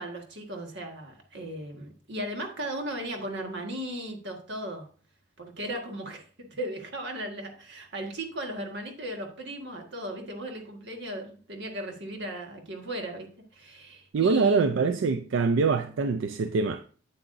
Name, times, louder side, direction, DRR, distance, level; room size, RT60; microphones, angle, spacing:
voice 1, 0.0-4.9 5.4-13.3 13.5-15.0, right 1 dB, 65° right, 1.5 m, -36 dB
voice 2, 14.1-16.9, right 4 dB, 90° right, 0.4 m, -24 dB
8.3 x 7.8 x 2.6 m
head